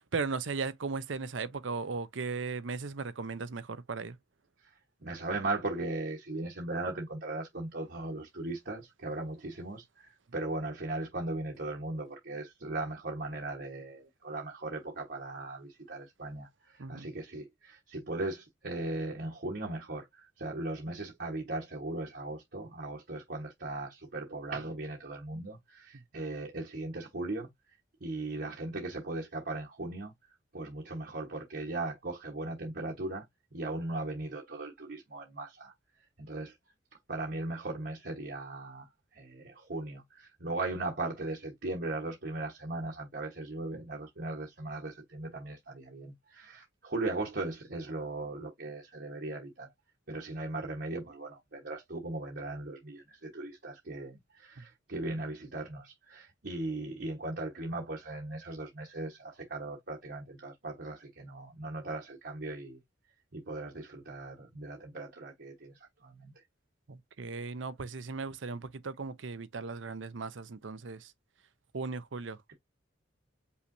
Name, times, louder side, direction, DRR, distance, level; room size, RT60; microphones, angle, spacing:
voice 1, 0.0-4.2 16.8-17.1 25.9-26.0 54.6-54.7 66.9-71.1 71.7-72.5, right 4 dB, 70° right, 0.7 m, -37 dB
voice 2, 4.6-33.2 33.5-36.6 37.1-49.7 50.1-62.8 63.3-66.4, right 2 dB, 55° right, 1.2 m, -38 dB
5.6 x 3.1 x 2.6 m
head